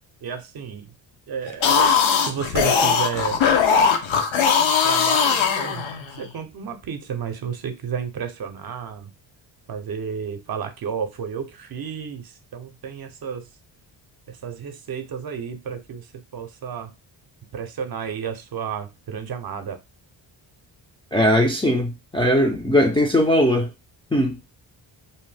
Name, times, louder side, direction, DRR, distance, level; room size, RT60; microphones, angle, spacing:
voice 1, 0.2-0.9 1.3-3.4 4.8-5.8 6.2-9.1 9.7-13.5 14.3-16.1 16.3-16.9 17.5-19.8, right 7 dB, 50° right, 0.6 m, -32 dB
sound 1, 1.5-6.2, left 6 dB, 75° left, 0.6 m, -19 dB
voice 2, 21.1-23.7 24.1-24.4, equal, 10° left, 0.3 m, -19 dB
2.7 x 2.0 x 3.2 m
cardioid pair, 105°, 47 cm